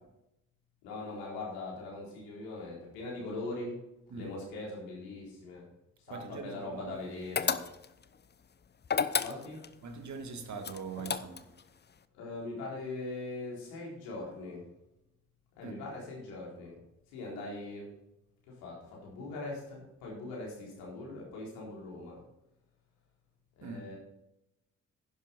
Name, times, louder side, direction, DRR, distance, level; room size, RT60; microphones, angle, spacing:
voice 1, 0.8-3.8 4.1-5.7 6.1-7.6 9.2-9.6 12.1-14.7 15.6-16.8 17.1-17.9 18.5-22.2 23.6-24.0, left 2 dB, 70° left, 4.0 m, -41 dB
voice 2, 6.1-7.0 9.8-11.5 15.6-15.8 23.6-23.9, right 4 dB, 50° right, 1.9 m, -42 dB
sound 1, 7.4-8.0 8.8-9.7 10.6-11.6, left 6 dB, 25° left, 0.8 m, -31 dB
11.0 x 10.5 x 4.3 m
figure-of-eight pair, 40°, 38 cm